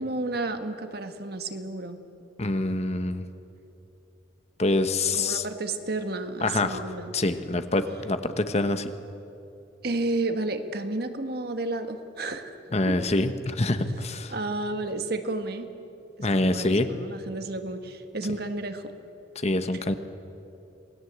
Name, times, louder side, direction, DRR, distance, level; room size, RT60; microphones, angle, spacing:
voice 1, 0.0-2.0 5.1-7.1 9.8-12.6 12.8-13.0 14.3-15.7 16.2-18.8, right 2 dB, 60° right, 7 dB, 1.6 m, -31 dB
voice 2, 2.4-3.3 4.6-5.4 6.4-6.8 7.1-8.9 12.7-14.3 16.2-16.9 19.3-19.9, left 2 dB, 40° left, 9 dB, 1.2 m, -25 dB
27.0 x 19.5 x 8.2 m, 2.7 s
head